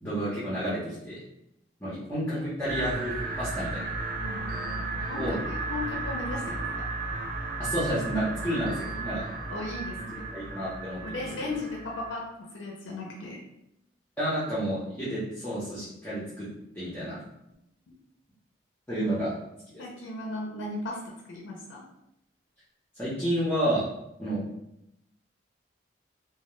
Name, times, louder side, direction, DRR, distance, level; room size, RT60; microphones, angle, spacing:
voice 1, 0.0-1.2 1.8-3.9 5.2-5.4 7.6-9.2 10.1-11.5 14.2-16.5 16.7-17.2 18.9-19.3 23.0-23.8 24.2-24.4, right 1 dB, 10° left, -11 dB, 0.6 m, -30 dB
sound 1, 2.7-12.2, right 3 dB, 45° right, 0.4 m, -34 dB
voice 2, 4.2-6.8 9.5-10.3 11.0-12.2 12.5-13.4 19.0-19.2 19.8-21.0 21.3-21.8, left 2 dB, 75° left, -2 dB, 0.4 m, -37 dB
2.2 x 2.0 x 3.0 m, 0.82 s
head